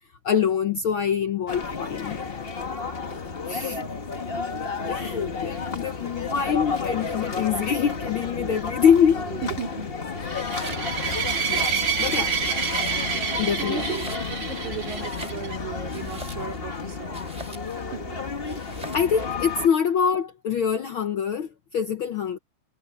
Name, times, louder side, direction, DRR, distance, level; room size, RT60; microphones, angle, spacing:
voice 1, 0.2-2.2 3.5-3.9 4.9-9.2 11.5-11.7 12.0-12.4 13.4-13.9 18.6-22.4, left 7 dB, 70° left, 1.2 m, -24 dB
sound 1, 1.5-19.7, left 4 dB, 45° left, 0.7 m, -32 dB
voice 2, 3.7-4.1 9.4-9.9 13.6-17.2 17.9-18.2, right 8 dB, 80° right, 3.9 m, -36 dB
Domestic sounds home sounds, 10.3-10.9 11.3-12.2 12.5-13.3 13.8-14.5 14.8-16.7 17.1-17.8 18.5-19.1, right 1 dB, 10° right, 5.2 m, -42 dB
sound 2, 10.3-15.6, right 6 dB, 50° right, 4.8 m, -28 dB
omnidirectional pair, 3.3 m